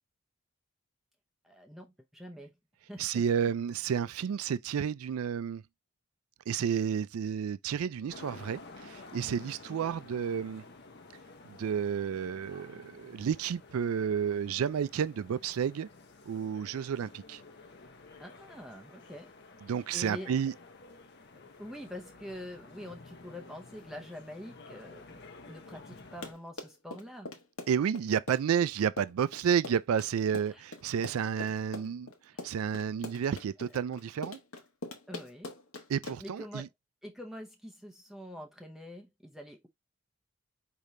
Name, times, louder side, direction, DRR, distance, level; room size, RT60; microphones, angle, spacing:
voice 1, 1.4-2.5 2.8-3.2 9.8-9.9 18.2-19.3 19.9-20.3 21.3-27.4 30.5-30.6 32.3-32.5 35.1-35.5 36.2-36.7 37.0-39.7, equal, ahead, 0.6 m, -45 dB
voice 2, 3.0-5.6 6.5-10.6 11.4-15.9 16.2-17.4 19.7-20.5 27.7-32.1 32.4-34.4 35.9-36.7, right 7 dB, 85° right, 0.3 m, -31 dB
sound 1, 8.1-26.3, left 3 dB, 50° left, 0.7 m, -52 dB
Run, 26.0-36.4, left 2 dB, 80° left, 1.0 m, -43 dB
5.1 x 2.8 x 3.1 m
head